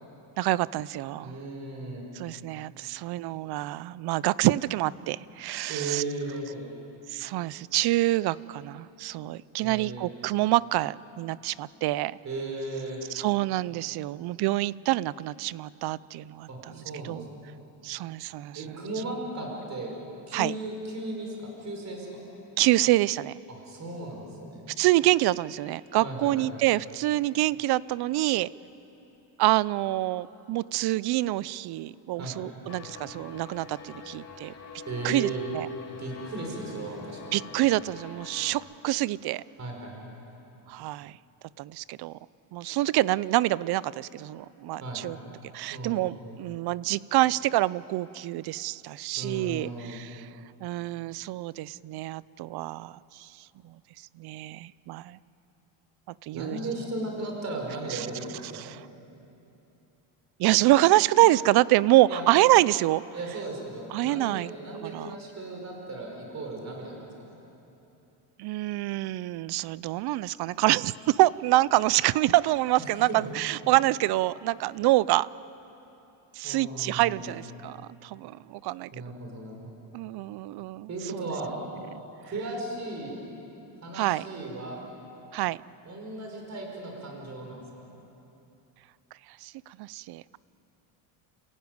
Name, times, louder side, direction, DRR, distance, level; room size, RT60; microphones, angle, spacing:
voice 1, 0.4-1.4 2.2-6.0 7.1-12.2 13.1-16.5 17.0-17.2 17.8-18.6 20.3-20.5 22.6-23.4 24.8-28.5 29.4-34.5 35.0-35.7 37.3-39.4 40.7-41.2 41.6-42.2 42.5-45.2 45.5-50.3 50.6-53.3 53.6-53.7 54.2-55.2 56.2-56.6 57.9-58.1 58.5-58.8 60.4-63.0 63.9-64.5 64.8-65.1 68.4-75.3 76.4-77.8 78.0-78.9 79.9-81.2 83.9-84.3 85.3-85.6 89.4-89.5 89.8-90.4, right 17 dB, 55° right, 20 dB, 0.5 m, -26 dB
voice 2, 1.2-2.0 5.7-6.7 9.6-10.1 12.2-13.0 16.5-17.4 18.5-19.9 20.3-22.1 23.5-24.6 26.0-26.5 32.2-32.5 34.9-35.4 36.0-37.4 39.6-39.9 44.8-45.0 45.7-46.1 49.2-50.0 56.3-58.8 62.1-62.2 63.1-66.9 67.2-67.4 72.8-73.2 76.4-77.3 78.9-79.8 80.9-81.5 82.3-83.2 83.8-84.8 85.9-87.6, right 2 dB, 35° right, 0 dB, 5.3 m, -36 dB
sound 1, 32.7-38.5, left 5 dB, 30° left, 3.3 m, -45 dB
29.5 x 15.5 x 9.5 m, 3.0 s
cardioid pair, 135°, 48 cm